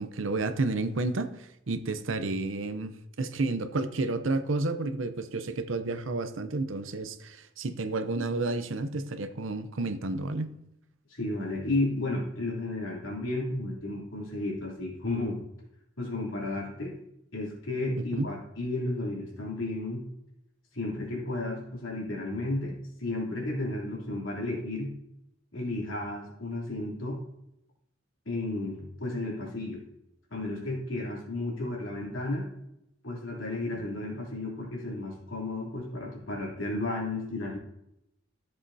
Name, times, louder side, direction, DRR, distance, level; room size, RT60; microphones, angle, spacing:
voice 1, 0.0-2.9 3.2-10.6 18.1-18.3, right 2 dB, 75° right, 10 dB, 0.7 m, -31 dB
voice 2, 11.1-15.4 16.0-17.0 17.3-20.0 20.7-24.9 25.5-27.2 28.2-29.8 30.3-32.5 33.0-37.6, left 2 dB, 80° left, -4 dB, 3.1 m, -33 dB
14.0 x 7.6 x 2.8 m, 0.80 s
head